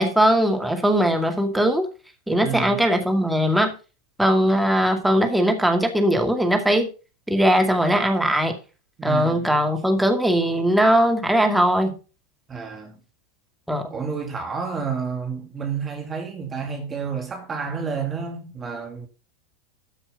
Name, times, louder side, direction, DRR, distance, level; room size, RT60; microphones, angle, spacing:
voice 1, 0.0-1.9 2.3-3.7 4.2-6.9 7.3-8.6 9.0-12.0 13.7-13.8, equal, 5° right, 2.3 m, -20 dB
voice 2, 2.4-2.8 9.0-9.5 12.5-13.0 13.9-19.1, right 6 dB, 25° right, 2.5 m, -30 dB
13.5 x 6.0 x 5.3 m
hypercardioid pair, 90°, 0 cm